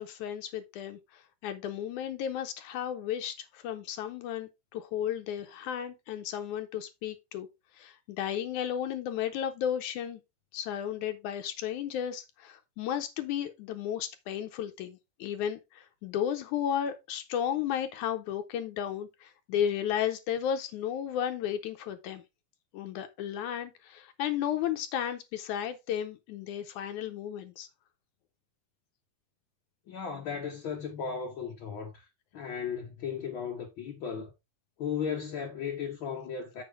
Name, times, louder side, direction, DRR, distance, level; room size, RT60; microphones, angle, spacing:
voice 1, 0.0-7.5 7.8-10.2 10.5-22.2 22.7-27.7, left 9 dB, 75° left, 2.1 m, -34 dB
voice 2, 29.9-32.0 32.3-34.3 34.8-36.6, left 7 dB, 55° left, 1.4 m, -36 dB
7.5 x 7.0 x 3.5 m
omnidirectional pair, 3.7 m